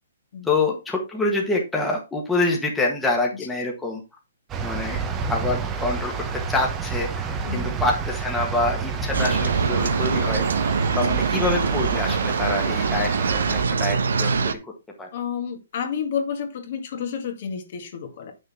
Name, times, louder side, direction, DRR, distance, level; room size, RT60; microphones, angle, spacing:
voice 1, 0.4-4.0 4.6-5.0 5.3-10.4 10.9-14.6 15.0-15.1, left 2 dB, 5° left, 1.5 m, -26 dB
sound 1, 4.5-13.6, right 5 dB, 15° right, 1.0 m, -29 dB
voice 2, 7.4-7.8 10.9-11.1 15.1-18.3, left 7 dB, 45° left, 2.0 m, -30 dB
sound 2, 9.1-14.5, right 5 dB, 85° right, 1.2 m, -23 dB
9.0 x 6.5 x 3.6 m
hypercardioid pair, 165°, 0 cm